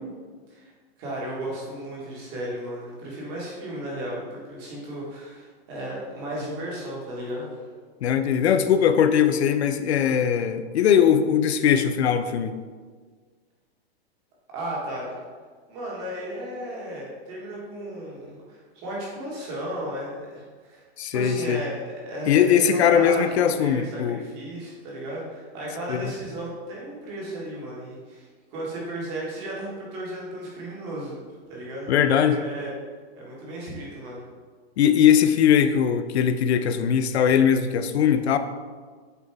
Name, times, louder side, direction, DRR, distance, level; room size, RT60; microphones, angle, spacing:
voice 1, 1.0-7.6 14.5-15.2 15.7-20.8 21.1-31.2 31.5-32.7 33.1-34.2, right 1 dB, 25° right, -4 dB, 1.6 m, -34 dB
voice 2, 8.0-12.5 21.0-21.6 22.3-24.2 25.9-26.1 31.9-32.4 34.8-38.4, left 8 dB, 80° left, 10 dB, 0.6 m, -20 dB
8.1 x 4.0 x 3.5 m, 1.5 s
supercardioid pair, 175°, 32 cm